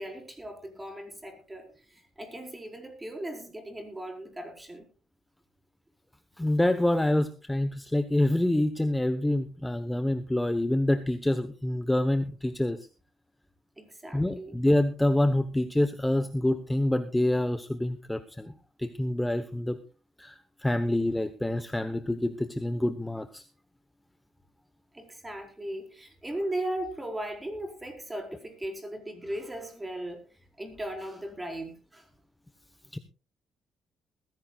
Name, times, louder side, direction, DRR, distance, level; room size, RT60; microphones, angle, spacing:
voice 1, 0.0-4.8 13.8-14.6 24.9-30.2 30.6-32.0, right 1 dB, 15° right, 4 dB, 4.8 m, -37 dB
voice 2, 6.4-12.8 14.1-18.5 18.8-19.8 20.2-23.4 32.9-33.0, left 1 dB, 10° left, 10 dB, 1.1 m, -26 dB
20.0 x 15.5 x 2.4 m, 0.34 s
cardioid pair, 90°, 0 cm